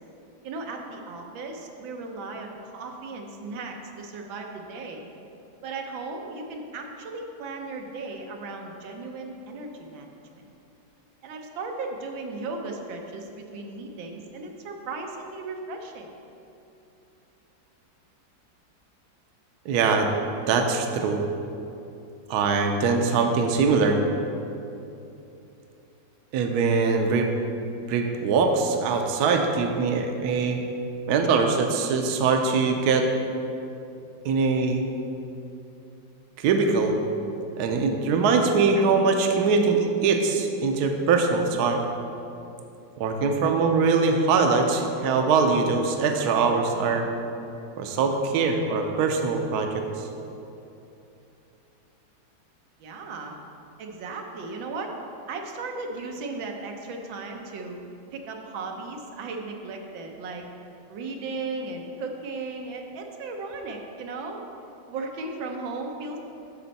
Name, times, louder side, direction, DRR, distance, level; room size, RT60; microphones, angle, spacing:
voice 1, 0.4-5.0 5.6-10.1 10.3-10.4 11.2-16.1 52.8-53.3 53.8-54.9 55.3-57.8 58.1-60.4 60.9-64.4 64.9-66.2, right 3 dB, 85° right, 2 dB, 1.6 m, -36 dB
voice 2, 19.7-20.1 20.5-21.2 22.3-24.0 26.3-27.3 27.9-30.6 31.1-33.1 34.2-34.8 36.4-37.0 37.5-41.8 43.0-47.1 47.8-50.1, right 4 dB, 70° right, 4 dB, 1.1 m, -22 dB
13.0 x 4.3 x 4.1 m, 2.8 s
omnidirectional pair, 2.0 m